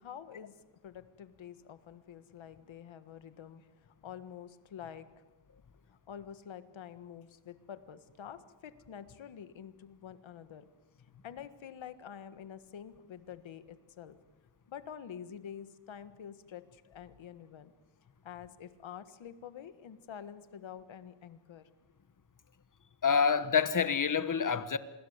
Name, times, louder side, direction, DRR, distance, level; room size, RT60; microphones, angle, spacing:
voice 1, 0.0-5.2 5.9-10.7 11.2-14.2 14.7-17.7 18.2-21.7, left 8 dB, 90° left, 1.6 m, -48 dB
voice 2, 23.0-24.8, left 6 dB, 45° left, 1.3 m, -27 dB
27.0 x 21.0 x 8.1 m
wide cardioid pair, 115°, 45 cm